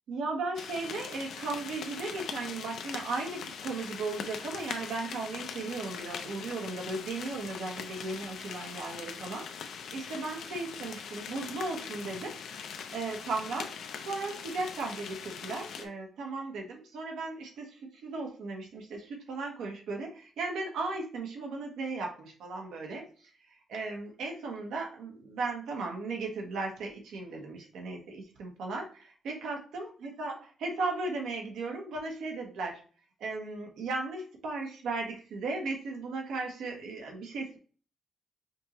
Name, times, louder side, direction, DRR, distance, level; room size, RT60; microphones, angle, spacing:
voice 1, 0.1-9.5 9.9-12.4 12.9-23.1 23.5-32.8 33.2-37.6, right 3 dB, 85° right, 2 dB, 1.1 m, -36 dB
sound 1, 0.6-15.9, left 7 dB, 75° left, 0.5 m, -42 dB
5.1 x 3.0 x 3.0 m, 0.40 s
cardioid pair, 130°, 0 cm